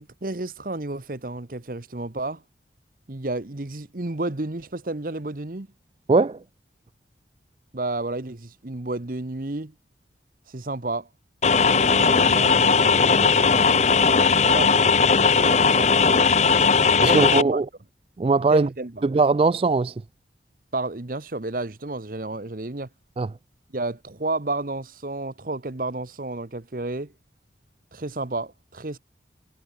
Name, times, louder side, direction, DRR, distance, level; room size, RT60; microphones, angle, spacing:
voice 1, 0.0-2.4 3.1-5.7 7.7-9.7 10.5-11.1 11.6-14.8 15.2-17.6 18.5-19.1 20.7-22.9 23.7-27.1 27.9-29.0, right 2 dB, 50° right, 1.1 m, -31 dB
voice 2, 6.1-6.4 17.0-17.7 18.2-18.7 19.0-20.0 23.2-23.3, right 3 dB, 30° right, 0.3 m, -20 dB
sound 1, 11.4-17.4, left 5 dB, 40° left, 0.7 m, -18 dB
head